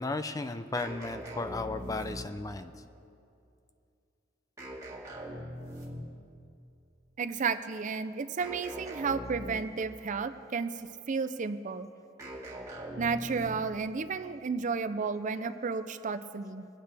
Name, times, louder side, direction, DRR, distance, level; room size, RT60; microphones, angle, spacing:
voice 1, 0.0-2.7, left 3 dB, 20° left, 10 dB, 0.4 m, -35 dB
sound 1, 0.8-2.5 4.6-6.2 8.4-9.9 12.2-13.8, equal, 15° right, 1.9 m, -42 dB
voice 2, 7.2-10.8 11.1-11.9 13.0-16.7, right 5 dB, 40° right, 11 dB, 0.5 m, -32 dB
22.5 x 8.9 x 3.4 m, 2.6 s
head